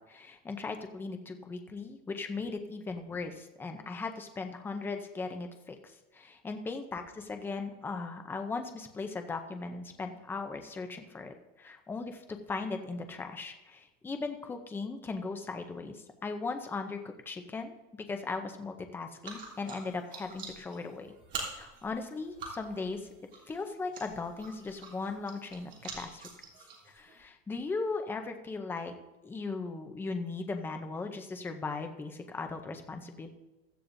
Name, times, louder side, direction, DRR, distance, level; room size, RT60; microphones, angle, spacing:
voice 1, 0.0-17.0 17.3-21.1 21.5-23.1 23.5-26.3 26.9-28.9 29.2-33.3, left 3 dB, 5° left, 5 dB, 0.5 m, -38 dB
sound 1, 19.2-27.2, right 4 dB, 30° right, 3.1 m, -46 dB
16.0 x 13.5 x 2.6 m, 1.1 s
supercardioid pair, 170°, 37 cm